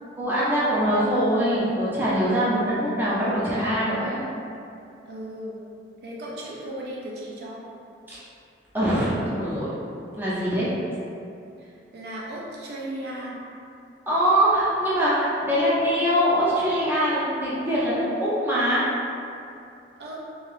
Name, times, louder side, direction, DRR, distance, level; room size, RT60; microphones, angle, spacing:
voice 1, 0.1-4.2 8.1-8.2 8.7-9.7 10.2-10.7 14.1-18.9, equal, 10° right, -9 dB, 0.6 m, -23 dB
voice 2, 5.1-5.6 6.0-7.6 11.6-13.3 20.0-20.2, right 1 dB, 60° right, -4 dB, 0.4 m, -36 dB
2.6 x 2.3 x 3.3 m, 2.6 s
head